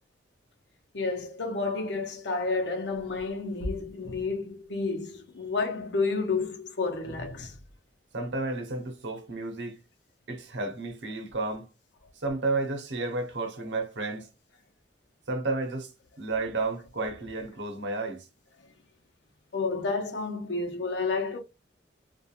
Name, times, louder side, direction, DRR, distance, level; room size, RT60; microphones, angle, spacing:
voice 1, 0.9-7.6 13.6-13.7 18.6-18.7 19.5-21.4, left 3 dB, 75° left, 0.7 m, -30 dB
voice 2, 8.1-9.8 10.3-11.7 12.1-14.3 15.3-15.9 16.2-18.3, right 3 dB, 85° right, 0.8 m, -32 dB
2.4 x 2.4 x 2.8 m
head